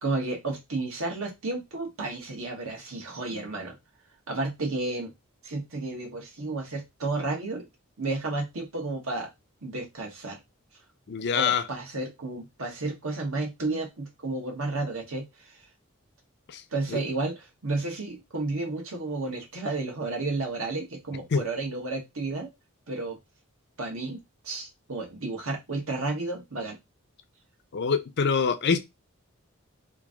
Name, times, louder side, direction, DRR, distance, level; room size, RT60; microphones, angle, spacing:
voice 1, 0.0-3.7 4.3-5.1 5.4-7.7 8.0-9.3 9.6-10.4 11.3-15.6 16.7-22.5 22.9-23.2 23.8-24.2 24.4-26.8, right 2 dB, 75° right, 1.2 m, -32 dB
voice 2, 11.1-11.6 16.5-16.6 21.3-21.4 27.7-28.8, left 6 dB, 55° left, 0.5 m, -24 dB
3.0 x 2.6 x 3.6 m
head